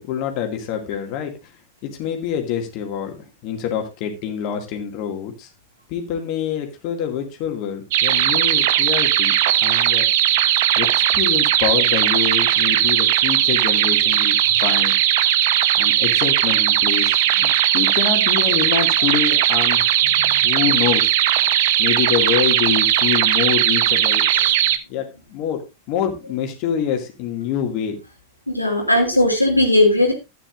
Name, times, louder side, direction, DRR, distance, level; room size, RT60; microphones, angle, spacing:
voice 1, 0.0-1.3 1.8-5.5 5.9-9.3 9.6-10.1 10.8-14.9 15.8-19.9 20.4-21.1 21.8-24.2 24.9-28.0, left 9 dB, 45° left, 4 dB, 2.1 m, -26 dB
sound 1, 7.9-24.8, right 12 dB, 50° right, 0.9 m, -18 dB
voice 2, 28.5-30.1, left 1 dB, 85° left, 0 dB, 1.8 m, -17 dB
13.5 x 9.3 x 2.5 m, 0.25 s
figure-of-eight pair, 90°, 0 cm